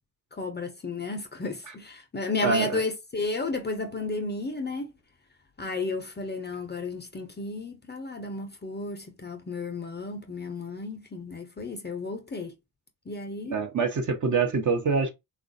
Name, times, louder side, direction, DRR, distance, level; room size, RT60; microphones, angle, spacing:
voice 1, 0.3-4.9 5.6-12.5 13.1-13.6, left 3 dB, 25° left, 0.6 m, -33 dB
voice 2, 2.4-2.8 13.5-15.1, right 4 dB, 40° right, 0.9 m, -25 dB
3.0 x 2.4 x 2.6 m
hypercardioid pair, 55°, 45 cm